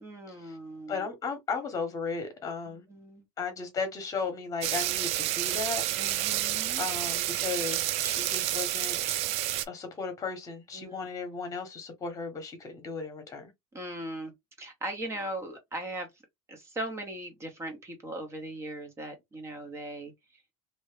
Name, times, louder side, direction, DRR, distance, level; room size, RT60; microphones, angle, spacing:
voice 1, 0.0-1.1 2.7-3.3 6.0-6.9 10.7-11.1 13.7-14.3 14.6-16.1 16.5-20.4, right 1 dB, 20° right, 1.0 m, -39 dB
voice 2, 0.9-2.8 3.4-5.8 6.8-9.2 9.7-13.5, left 4 dB, 20° left, 1.3 m, -35 dB
sound 1, 4.6-9.6, right 14 dB, 45° right, 0.4 m, -29 dB
2.8 x 2.6 x 3.3 m
supercardioid pair, 145°, 15 cm